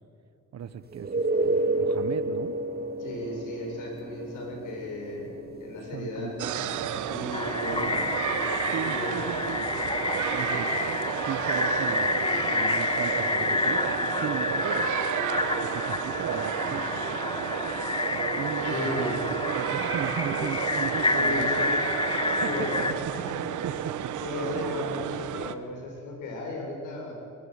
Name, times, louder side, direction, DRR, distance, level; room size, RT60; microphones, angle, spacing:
voice 1, 0.5-2.5 5.9-6.3 6.9-7.3 7.6-8.0 8.7-9.6 10.3-10.7 11.2-14.9 15.6-17.5 18.3-19.2 19.5-21.8 22.3-22.7 23.1-23.2 23.6-25.1, right 9 dB, 60° right, 13 dB, 1.3 m, -37 dB
sound 1, 0.9-12.4 16.7-16.8, right 2 dB, 30° right, 1.7 m, -33 dB
voice 2, 3.0-5.3 5.6-8.0 8.7-9.5 18.7-19.2 21.0-21.7 22.3-23.9 24.2-27.1, left 2 dB, 85° left, 0 dB, 7.3 m, -36 dB
sound 2, 6.4-25.5, right 10 dB, 75° right, 1.1 m, -32 dB
sound 3, 7.3-22.9, left 3 dB, 15° left, 1.5 m, -29 dB
23.0 x 22.5 x 6.6 m, 2.4 s
cardioid pair, 90°, 30 cm